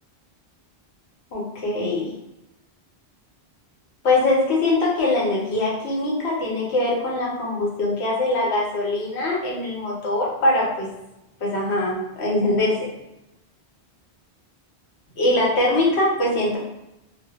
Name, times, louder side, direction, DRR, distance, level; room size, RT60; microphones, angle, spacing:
voice 1, 1.3-2.1 4.0-10.9 11.4-12.9 15.2-16.6, left 2 dB, 85° left, -4 dB, 1.1 m, -22 dB
2.2 x 2.1 x 2.8 m, 0.89 s
omnidirectional pair, 1.1 m